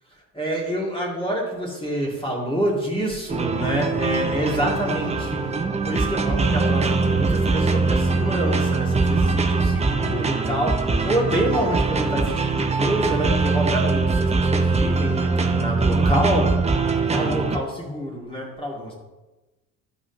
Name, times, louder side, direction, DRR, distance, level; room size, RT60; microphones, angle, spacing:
voice 1, 0.3-5.6 5.8-16.6 17.1-18.9, equal, 10° left, -2 dB, 2.3 m, -27 dB
sound 1, 3.3-17.6, right 4 dB, 15° right, 0.6 m, -22 dB
12.5 x 4.8 x 2.9 m, 1.1 s
hypercardioid pair, 60°, 45 cm